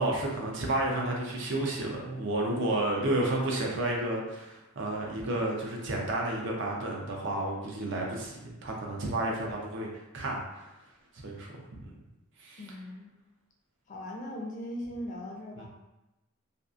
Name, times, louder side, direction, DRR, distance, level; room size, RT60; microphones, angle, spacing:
voice 1, 0.0-9.9 10.1-10.7 11.2-11.5 11.8-12.0 12.4-12.6, right 1 dB, 55° right, -1 dB, 0.5 m, -31 dB
voice 2, 12.6-13.1 13.9-15.7, left 1 dB, 35° left, 0 dB, 0.4 m, -39 dB
2.6 x 2.3 x 2.4 m, 0.97 s
head